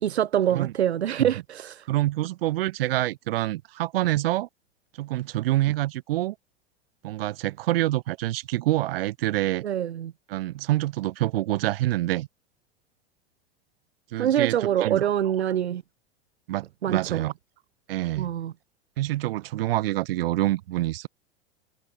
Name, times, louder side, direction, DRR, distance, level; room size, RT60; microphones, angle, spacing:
voice 1, 0.0-1.9 9.6-10.1 14.1-15.8 16.8-17.3 18.2-18.5, right 10 dB, 80° right, 0.6 m, -25 dB
voice 2, 1.9-4.5 5.0-6.4 7.0-9.6 10.3-12.3 14.1-15.1 16.5-17.3 17.9-18.3 19.0-21.1, right 16 dB, 60° right, 2.0 m, -26 dB
figure-of-eight pair, 90°, 32 cm